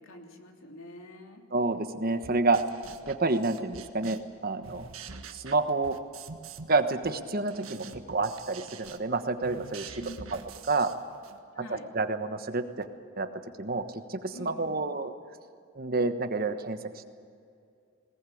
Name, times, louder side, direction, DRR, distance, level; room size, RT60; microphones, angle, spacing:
voice 1, 0.0-1.4 10.0-10.5 11.5-11.8 14.3-14.7, left 1 dB, 80° left, 2 dB, 2.9 m, -45 dB
voice 2, 1.5-2.6 3.1-4.9 5.3-5.9 6.7-10.0 10.3-10.4 10.7-10.9 11.7-12.9 13.2-13.3 13.6-15.1 15.7-17.1, right 3 dB, 45° right, 8 dB, 1.2 m, -29 dB
sound 1, 2.2-4.4 4.6-6.8 7.0-11.4, right 5 dB, 80° right, 1.5 m, -46 dB
20.5 x 19.0 x 8.6 m, 2.4 s
head